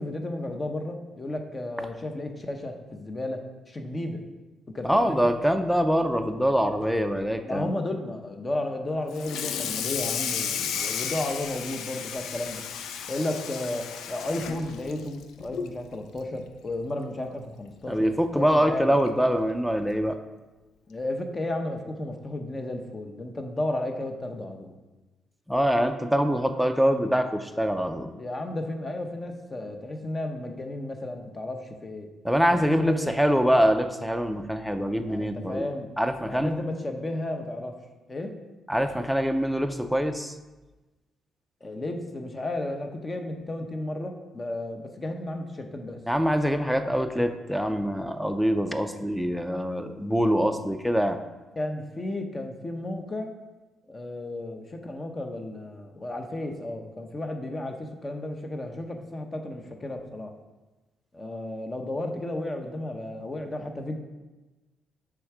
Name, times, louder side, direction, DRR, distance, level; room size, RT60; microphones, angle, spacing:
voice 1, 0.0-4.2 4.7-5.3 7.4-12.6 13.1-18.9 20.9-24.8 28.1-32.1 32.5-33.3 35.1-35.9 36.3-37.7 38.1-38.3 41.6-46.0 46.9-47.0 51.6-53.3 53.9-60.3 61.1-64.0, left 1 dB, 25° left, 5 dB, 0.8 m, -33 dB
voice 2, 4.8-7.7 17.9-20.2 25.5-28.1 32.2-35.6 36.0-36.5 38.7-40.3 46.1-51.2, equal, ahead, 8 dB, 0.5 m, -24 dB
Water tap faucet / Sink (filling or washing), 9.1-15.8 16.2-16.4 16.8-16.9 17.3-17.4 18.5-18.6 19.1-19.3, left 8 dB, 80° left, 0.4 m, -33 dB
6.2 x 3.6 x 4.8 m, 1.1 s
cardioid pair, 90°, 0 cm